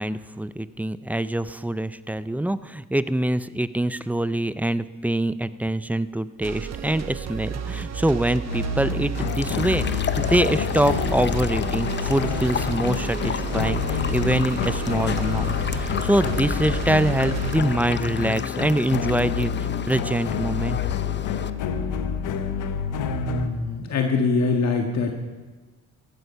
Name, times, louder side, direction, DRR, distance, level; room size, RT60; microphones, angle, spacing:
voice 1, 0.0-20.8, right 1 dB, 5° right, 14 dB, 0.5 m, -25 dB
sound 1, 6.4-17.6, right 6 dB, 60° right, 1.1 m, -32 dB
sound 2, 8.5-23.5, left 8 dB, 90° left, 1.1 m, -28 dB
sound 3, 9.1-21.5, left 7 dB, 35° left, 0.7 m, -32 dB
voice 2, 23.0-25.1, left 3 dB, 60° left, 3 dB, 1.6 m, -24 dB
15.0 x 13.0 x 5.6 m, 1.3 s
cardioid pair, 90°, 30 cm